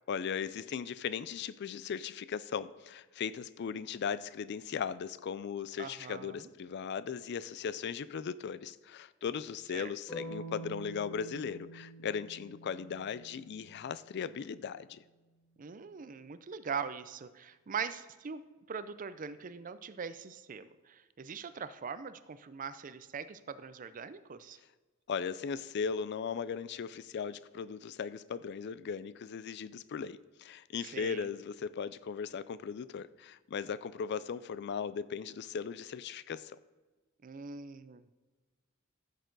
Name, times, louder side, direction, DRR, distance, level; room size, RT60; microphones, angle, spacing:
voice 1, 0.1-15.0 25.1-36.6, left 6 dB, 55° left, 17 dB, 0.4 m, -38 dB
voice 2, 5.8-6.5 9.7-9.9 15.6-24.6 30.8-31.3 37.2-38.2, right 6 dB, 40° right, 13 dB, 0.5 m, -42 dB
sound 1, 10.1-14.1, right 1 dB, 20° left, 2.2 m, -47 dB
14.5 x 6.6 x 4.0 m, 1.3 s
head